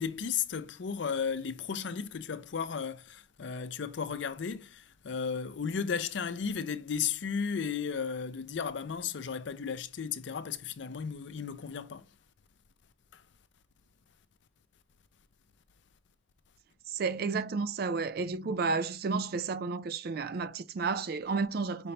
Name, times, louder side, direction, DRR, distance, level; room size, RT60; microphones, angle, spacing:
voice 1, 0.0-12.1 13.1-13.2 18.4-18.6, left 6 dB, 70° left, 0.5 m, -34 dB
voice 2, 16.9-21.9, right 4 dB, 50° right, 0.4 m, -32 dB
5.1 x 2.9 x 3.2 m
head